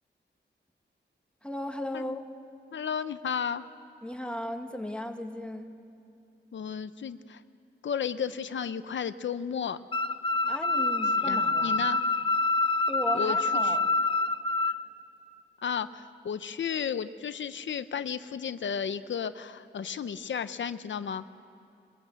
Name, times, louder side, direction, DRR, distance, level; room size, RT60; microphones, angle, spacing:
voice 1, 1.4-2.2 4.0-5.7 10.5-11.8 12.9-13.9, left 1 dB, 5° left, 4 dB, 1.6 m, -36 dB
voice 2, 2.7-3.6 6.5-7.4 7.8-9.8 11.2-12.0 13.1-13.8 15.6-21.2, left 7 dB, 85° left, 12 dB, 0.6 m, -33 dB
sound 1, 9.9-14.8, left 3 dB, 25° left, 0.8 m, -26 dB
23.0 x 21.5 x 8.1 m, 2.6 s
wide cardioid pair, 145°, 19 cm